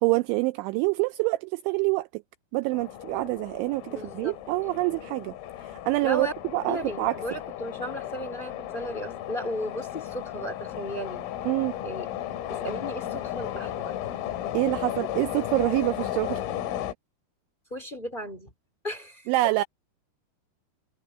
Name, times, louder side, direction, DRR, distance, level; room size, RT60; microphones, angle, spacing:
voice 1, 0.0-2.2 2.5-5.3 5.6-6.3 6.5-7.2 11.5-11.8 14.5-16.4 19.3-19.6, right 21 dB, 85° right, 2.7 m, -26 dB
sound 1, 2.7-16.9, left 12 dB, 90° left, 4.5 m, -35 dB
voice 2, 3.9-4.4 6.0-6.3 6.7-11.3 11.8-12.1 12.5-13.9 17.7-18.5 18.8-19.3, equal, 20° left, 1.5 m, -35 dB
omnidirectional pair, 5.8 m